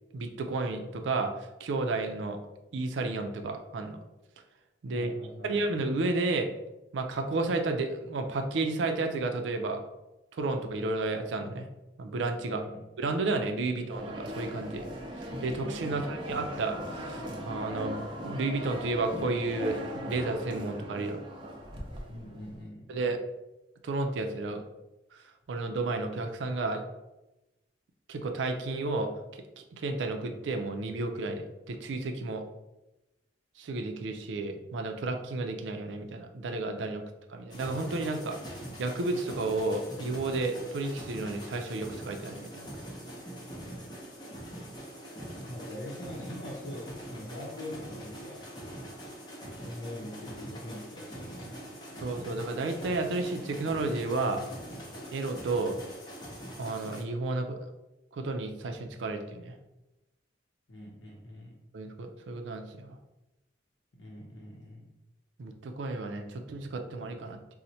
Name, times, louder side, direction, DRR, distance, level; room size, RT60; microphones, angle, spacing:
voice 1, 0.1-1.3 1.6-2.4 2.7-4.0 4.8-5.1 5.4-6.5 6.9-9.8 10.3-11.7 12.0-12.6 13.0-14.9 15.4-21.2 22.9-23.2 23.8-24.6 25.5-26.8 28.1-29.1 29.6-32.4 33.6-37.0 37.3-42.6 52.0-54.5 55.1-55.8 56.6-57.6 58.1-59.5 61.7-62.9 65.4-67.4, right 3 dB, 90° right, 5 dB, 0.4 m, -32 dB
voice 2, 4.9-5.6 12.5-12.8 15.8-16.1 22.1-22.9 45.5-48.5 49.5-52.1 60.7-61.6 64.0-64.9, left 1 dB, 80° left, -3 dB, 0.7 m, -43 dB
sound 1, 13.9-22.5, equal, 30° right, 0.5 m, -38 dB
sound 2, 37.5-57.0, equal, 25° left, 0.7 m, -43 dB
4.2 x 2.1 x 2.7 m, 0.99 s
head